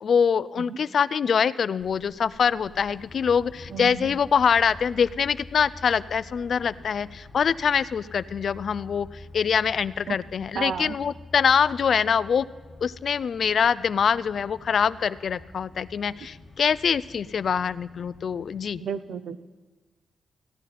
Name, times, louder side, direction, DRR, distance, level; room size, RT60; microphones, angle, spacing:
voice 1, 0.0-9.1 9.3-12.5 12.8-18.8, left 7 dB, 65° left, 18 dB, 0.3 m, -24 dB
sound 1, 1.8-18.7, left 2 dB, 45° left, 1.3 m, -47 dB
voice 2, 3.7-4.1 10.1-10.2 10.5-11.0 18.8-19.4, right 7 dB, 75° right, 13 dB, 0.6 m, -32 dB
15.5 x 10.5 x 4.2 m, 1.3 s
cardioid pair, 70°, 0 cm